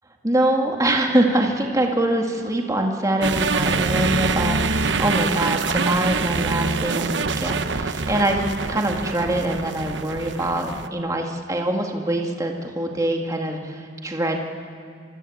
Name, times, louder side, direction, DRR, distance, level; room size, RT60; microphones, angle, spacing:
voice 1, 0.2-8.4 8.7-14.4, right 1 dB, 20° right, 1 dB, 2.2 m, -23 dB
sound 1, 3.2-10.9, right 4 dB, 80° right, 1.0 m, -25 dB
26.0 x 24.0 x 8.6 m, 2.3 s
head